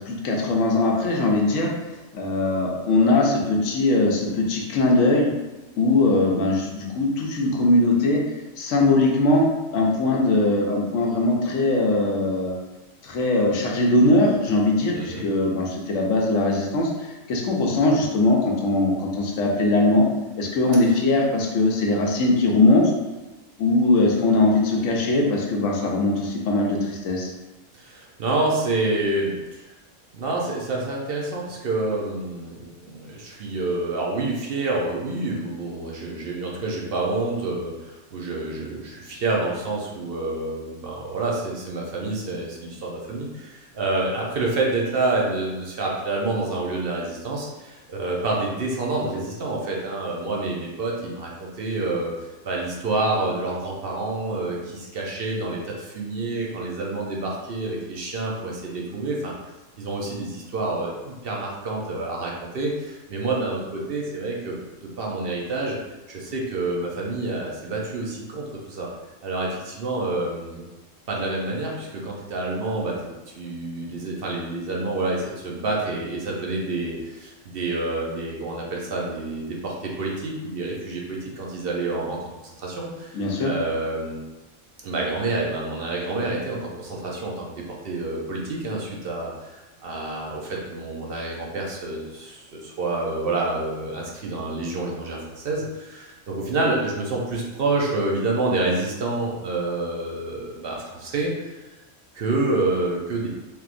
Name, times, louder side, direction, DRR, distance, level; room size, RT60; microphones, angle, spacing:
voice 1, 0.0-1.7 2.1-5.3 5.8-8.2 8.6-9.5 9.7-12.5 13.0-16.9 17.3-20.1 20.4-22.9 23.6-27.3 83.1-83.5, left 2 dB, 90° left, -1 dB, 1.0 m, -20 dB
voice 2, 14.9-15.2 27.7-29.7 30.1-52.1 52.4-59.3 59.8-64.6 64.8-65.8 66.1-68.9 69.2-70.6 71.1-73.0 73.3-84.2 84.8-101.6 102.1-103.3, right 2 dB, 55° right, -2 dB, 0.8 m, -28 dB
3.4 x 2.9 x 2.5 m, 1.1 s
omnidirectional pair, 1.3 m